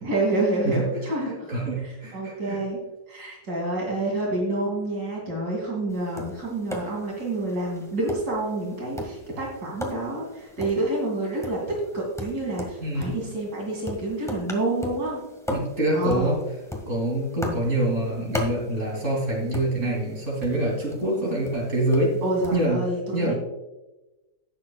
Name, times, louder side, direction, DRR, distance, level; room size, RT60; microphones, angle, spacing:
voice 1, 0.0-1.5 1.8-2.8 3.1-15.2 15.9-16.3 22.2-23.3, right 2 dB, 70° right, -3 dB, 3.0 m, -28 dB
voice 2, 1.5-2.6 12.8-13.1 15.5-16.4 16.9-22.2 22.5-22.8 23.1-23.3, right 1 dB, 45° right, -3 dB, 3.4 m, -25 dB
Tap, 5.9-22.6, equal, ahead, 1.6 m, -38 dB
18.0 x 7.6 x 2.3 m, 1.1 s
omnidirectional pair, 1.8 m